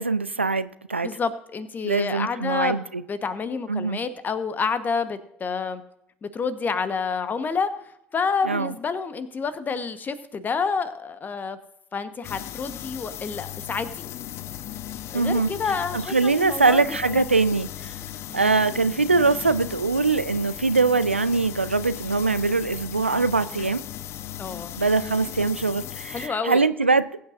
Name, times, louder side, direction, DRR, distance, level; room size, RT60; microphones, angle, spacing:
voice 1, 0.0-1.1 1.8-3.0 3.7-4.0 8.4-8.7 15.1-15.5 15.9-17.9 18.3-23.8 24.8-27.2, right 3 dB, 90° right, 15 dB, 0.4 m, -22 dB
voice 2, 1.0-2.8 3.1-5.8 6.2-7.7 8.1-11.6 11.9-14.0 15.1-17.2 18.3-18.5 24.4-24.7 26.1-26.6, left 5 dB, 30° left, 12 dB, 1.1 m, -28 dB
sound 1, 12.2-26.3, left 12 dB, 45° left, 0.5 m, -37 dB
21.0 x 8.6 x 2.6 m, 0.79 s
figure-of-eight pair, 60°, 6 cm